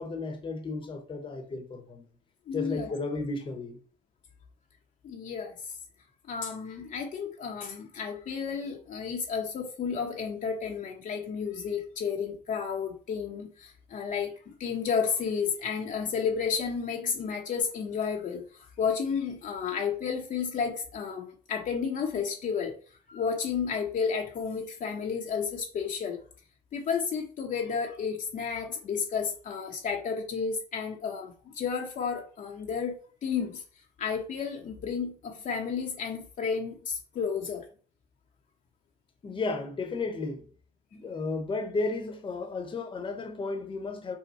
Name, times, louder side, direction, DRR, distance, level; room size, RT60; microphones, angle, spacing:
voice 1, 0.0-2.0 2.5-3.8 39.2-40.4 40.9-44.1, left 3 dB, 30° left, 0.9 m, -33 dB
voice 2, 2.5-2.9 5.0-5.5 6.3-22.7 23.1-26.2 26.7-33.6 34.0-37.7, left 6 dB, 50° left, 0.8 m, -32 dB
5.5 x 2.2 x 4.2 m
cardioid pair, 110°, 17 cm